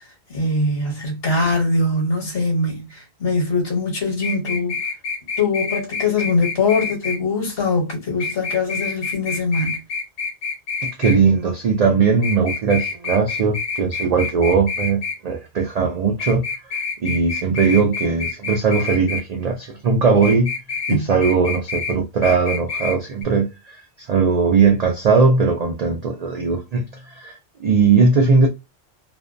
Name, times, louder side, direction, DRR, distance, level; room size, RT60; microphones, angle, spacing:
voice 1, 0.3-4.8 5.4-9.8 20.9-21.1, left 3 dB, 60° left, 1.1 m, -22 dB
sound 1, 4.2-7.2 8.2-11.2 12.2-15.2 16.2-19.2 20.2-21.0 21.2-22.0 22.2-23.0 23.2-23.3, left 5 dB, 80° left, 0.9 m, -27 dB
voice 2, 11.0-20.5 20.9-28.5, right 5 dB, 65° right, 0.4 m, -19 dB
2.5 x 2.1 x 2.5 m
omnidirectional pair, 1.2 m